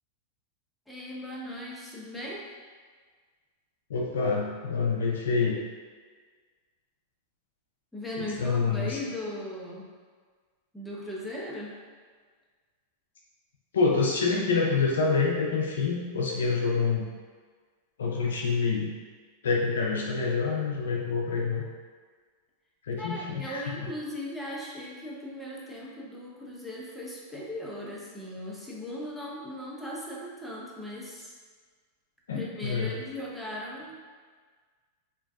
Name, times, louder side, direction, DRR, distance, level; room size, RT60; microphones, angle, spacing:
voice 1, 0.9-2.5 7.9-9.9 10.7-11.8 23.0-31.3 32.3-34.0, left 1 dB, ahead, -5 dB, 0.5 m, -38 dB
voice 2, 3.9-5.6 8.2-9.0 13.7-17.0 18.0-18.9 19.4-21.6 22.8-23.6 32.3-33.0, left 4 dB, 85° left, -1 dB, 0.3 m, -27 dB
2.5 x 2.2 x 2.3 m, 1.5 s
hypercardioid pair, 115°, 0 cm